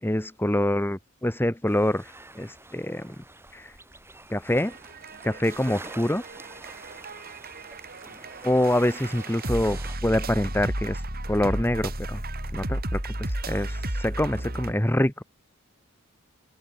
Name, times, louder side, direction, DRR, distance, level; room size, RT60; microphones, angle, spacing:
voice 1, 0.0-3.1 3.5-3.7 4.3-4.7 5.2-6.2 8.4-11.0 11.3-12.2 12.5-15.2, left 1 dB, 10° left, 1.4 m, -26 dB
sound 1, 1.7-10.0, right 2 dB, 10° right, 7.8 m, -46 dB
sound 2, 4.6-14.7, right 1 dB, 45° right, 5.8 m, -33 dB
head